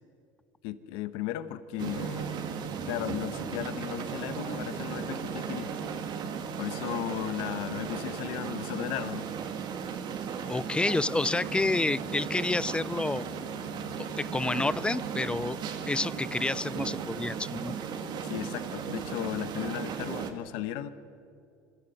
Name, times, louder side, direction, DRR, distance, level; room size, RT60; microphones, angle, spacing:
voice 1, 0.6-2.5 2.9-5.7 6.6-9.3 18.2-20.9, left 13 dB, 70° left, 13 dB, 1.0 m, -35 dB
sound 1, 1.8-20.3, right 6 dB, 55° right, 2.0 m, -36 dB
voice 2, 10.5-13.3 14.2-15.6 15.9-17.8, left 2 dB, 10° left, 21 dB, 0.4 m, -29 dB
27.0 x 13.5 x 7.9 m, 2.5 s
supercardioid pair, 85°, 9 cm